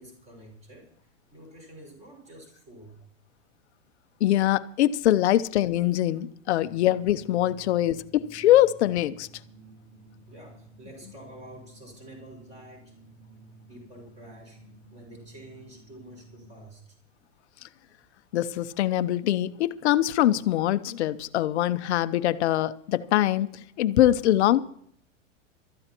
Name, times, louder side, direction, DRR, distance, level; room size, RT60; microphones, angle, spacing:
voice 1, 0.0-3.0 5.3-5.4 10.3-12.9 13.7-14.6 14.9-17.0, right 1 dB, 20° right, 5.9 m, -48 dB
voice 2, 4.2-9.3 18.3-23.5 23.8-24.6, left 13 dB, 60° left, 0.9 m, -23 dB
sound 1, 6.6-16.7, right 2 dB, 65° right, 4.0 m, -52 dB
22.0 x 13.5 x 3.0 m
supercardioid pair, 160°, 38 cm